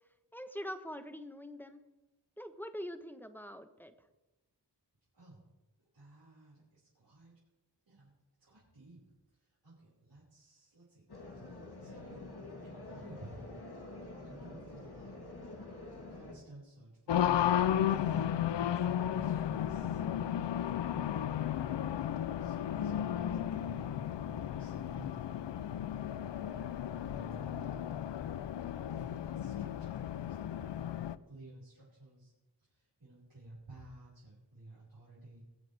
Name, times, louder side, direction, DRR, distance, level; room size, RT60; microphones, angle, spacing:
voice 1, 0.3-1.9 2.4-3.9, equal, 5° left, 9 dB, 1.0 m, -44 dB
voice 2, 5.9-7.3 7.9-8.1 8.4-9.0 9.3-11.0 11.4-12.2 12.6-13.6 14.1-15.2 16.1-25.3 26.3-27.9 28.8-32.3 32.7-35.4, right 2 dB, 90° right, -9 dB, 5.0 m, -55 dB
sound 1, 11.1-16.3, left 2 dB, 65° left, 2.7 m, -47 dB
Race car auto racing, 17.1-31.2, left 10 dB, 90° left, 0.5 m, -34 dB
23.0 x 7.9 x 3.4 m, 1.0 s
wide cardioid pair, 50°, 42 cm